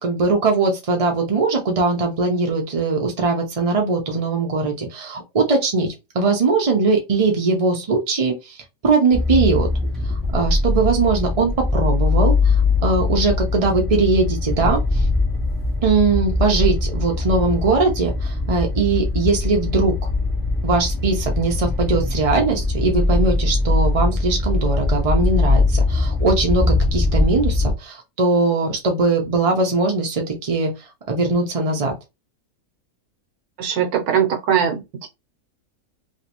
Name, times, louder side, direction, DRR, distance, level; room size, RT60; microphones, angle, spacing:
voice 1, 0.0-8.6 8.8-9.7 10.0-15.1 15.8-19.9 20.6-31.9, right 3 dB, 45° right, 0.4 m, -20 dB
sound 1, 9.1-27.7, left 3 dB, ahead, 1.0 m, -21 dB
voice 2, 33.6-35.1, right 8 dB, 85° right, 1.2 m, -21 dB
3.1 x 3.0 x 2.9 m
omnidirectional pair, 1.6 m